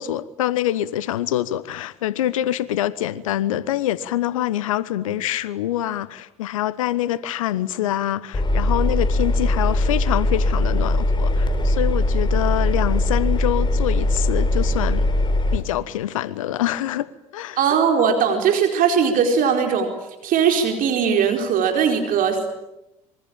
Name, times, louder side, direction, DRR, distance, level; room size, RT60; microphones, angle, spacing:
voice 1, 0.0-15.1 15.5-17.6, left 13 dB, 80° left, 1.0 m, -25 dB
Engine, 8.3-15.6, left 1 dB, 30° left, 3.7 m, -20 dB
voice 2, 17.6-19.9 20.2-22.4, right 7 dB, 55° right, 4.5 m, -19 dB
27.0 x 24.0 x 8.9 m
hypercardioid pair, 60°, 17 cm